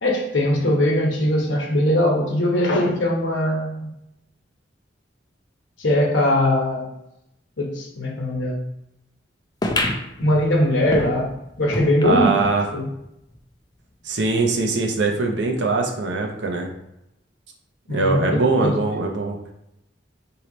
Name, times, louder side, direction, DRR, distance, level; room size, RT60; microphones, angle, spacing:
voice 1, 0.0-3.9 5.8-6.9 7.6-8.6 10.2-11.3 11.6-12.4 12.7-12.9 17.9-18.8, left 1 dB, 85° left, -1 dB, 1.0 m, -20 dB
sound 1, 9.6-12.6 13.0-13.1 13.3-13.4 14.2-14.3, left 1 dB, 20° left, 0.4 m, -28 dB
voice 2, 12.0-12.6 14.0-16.7 17.9-19.4, right 3 dB, 70° right, 1 dB, 0.7 m, -22 dB
3.2 x 2.9 x 3.9 m, 0.85 s
head